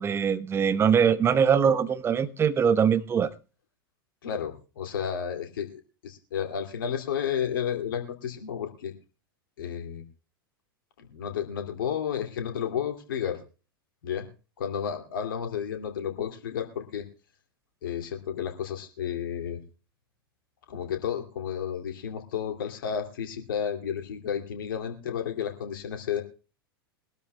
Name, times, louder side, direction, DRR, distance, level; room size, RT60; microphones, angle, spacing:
voice 1, 0.0-3.3, right 7 dB, 20° right, 0.9 m, -22 dB
voice 2, 4.2-8.9 9.6-10.0 11.0-13.4 14.0-14.3 14.6-17.0 17.8-19.6 20.7-26.2, left 8 dB, 60° left, 2.5 m, -32 dB
22.5 x 12.5 x 2.2 m
figure-of-eight pair, 90°, 12 cm